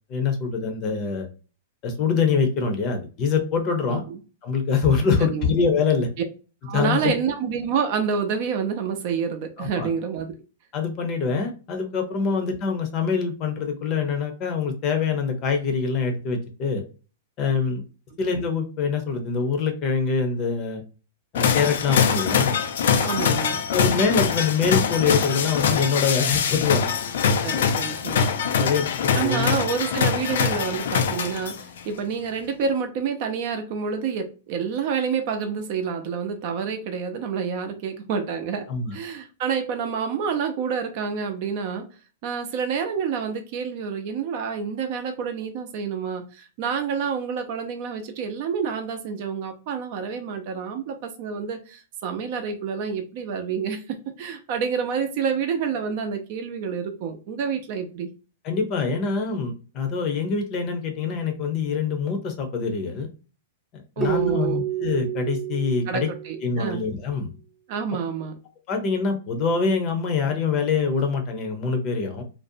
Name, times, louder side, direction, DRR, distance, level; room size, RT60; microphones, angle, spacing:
voice 1, 0.1-1.3 1.8-4.0 4.4-6.1 6.7-7.1 9.6-9.9 10.7-16.8 17.4-17.8 18.2-20.8 21.3-22.6 23.7-26.9 28.6-29.5 38.7-38.9 58.4-63.1 64.0-66.1 66.4-67.3 68.7-72.2, left 5 dB, 35° left, 0.7 m, -24 dB
voice 2, 6.6-10.3 23.0-23.6 27.4-28.3 29.2-38.7 38.9-41.8 42.2-58.1 64.0-64.6 65.9-66.8 67.7-68.4, right 6 dB, 50° right, 0.6 m, -28 dB
sound 1, 21.3-31.8, left 6 dB, 75° left, 0.4 m, -23 dB
Keyboard (musical), 64.0-66.8, right 10 dB, 5° right, 0.4 m, -29 dB
2.5 x 2.0 x 2.6 m
hypercardioid pair, 145°, 0 cm